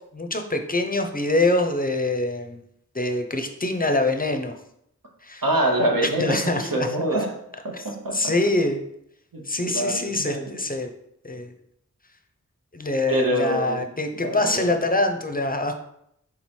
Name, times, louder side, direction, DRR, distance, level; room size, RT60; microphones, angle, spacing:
voice 1, 0.1-2.6 2.9-4.6 5.2-5.4 6.2-6.9 7.7-7.8 8.1-8.8 9.5-10.9 11.2-11.5 12.7-15.7, left 2 dB, 25° left, 5 dB, 0.5 m, -24 dB
voice 2, 5.4-7.3 7.8-8.3 9.3-10.5 13.1-13.8 14.2-14.7, right 1 dB, 85° right, 1 dB, 0.9 m, -25 dB
3.7 x 3.0 x 4.3 m, 0.75 s
wide cardioid pair, 55°, 33 cm